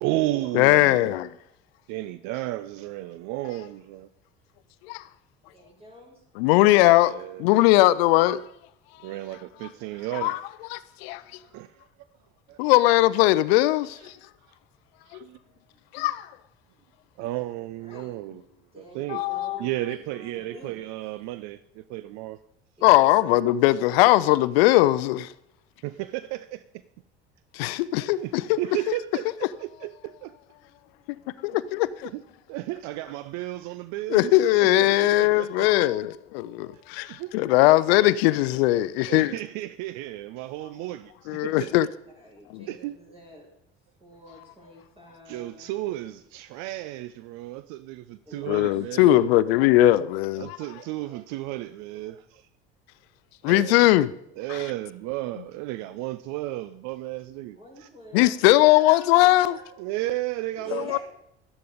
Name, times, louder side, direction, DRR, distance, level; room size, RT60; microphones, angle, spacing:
voice 1, 0.0-1.2 1.9-4.1 6.9-7.4 9.0-10.4 11.4-11.9 12.5-12.6 14.0-14.1 15.0-15.4 17.2-18.4 18.8-19.2 19.6-22.4 25.8-26.6 28.2-28.3 28.6-30.3 32.0-32.2 32.5-35.9 37.1-37.3 39.0-41.7 42.7-42.9 45.3-49.3 50.4-52.5 53.4-53.8 54.4-57.9 59.8-61.0, right 16 dB, 65° right, 0.6 m, -33 dB
voice 2, 0.5-1.3 4.9-5.0 6.4-8.4 10.2-10.4 10.7-11.2 12.6-14.1 15.9-16.3 19.1-19.6 22.8-25.3 27.5-28.6 31.4-32.1 34.1-39.3 41.3-41.9 48.5-50.6 53.4-54.1 54.5-54.6 58.1-59.6 60.7-61.0, left 16 dB, 75° left, 0.5 m, -20 dB
voice 3, 5.5-6.2 17.8-18.4 18.7-20.8 22.8-23.6 30.6-30.7 31.1-31.2 42.2-43.5 44.0-45.7 48.2-49.2 57.5-59.8 60.6-61.0, equal, 20° right, 6.5 m, -48 dB
12.5 x 10.5 x 5.1 m
hypercardioid pair, 70°, 31 cm